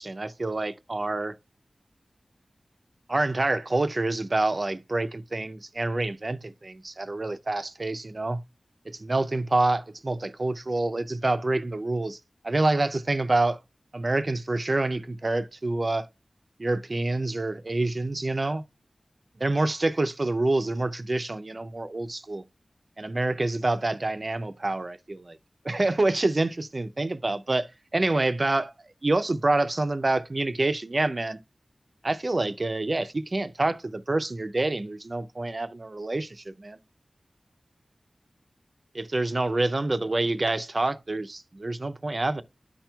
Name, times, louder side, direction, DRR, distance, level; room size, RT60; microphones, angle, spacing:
voice 1, 0.0-1.4 3.1-8.4 8.9-12.2 12.4-13.6 13.9-16.1 16.6-18.6 19.4-22.4 23.0-25.4 25.6-28.7 29.0-31.4 32.0-36.8 38.9-42.4, right 2 dB, 45° right, 0.4 m, -27 dB
13.0 x 4.4 x 2.2 m
wide cardioid pair, 70°, 0 cm